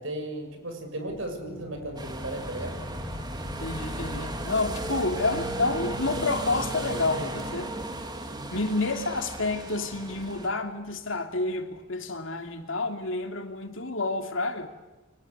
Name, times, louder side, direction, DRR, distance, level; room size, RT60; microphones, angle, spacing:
voice 1, 0.0-2.7 8.3-8.6, right 1 dB, 70° right, 6.9 m, -36 dB
sound 1, 1.1-12.2, equal, 5° right, 6.1 m, -43 dB
sound 2, 2.0-10.5, right 1 dB, 20° right, 2.9 m, -35 dB
voice 2, 3.6-7.7 8.5-14.7, left 3 dB, 70° left, 2.9 m, -29 dB
29.5 x 24.5 x 8.3 m
head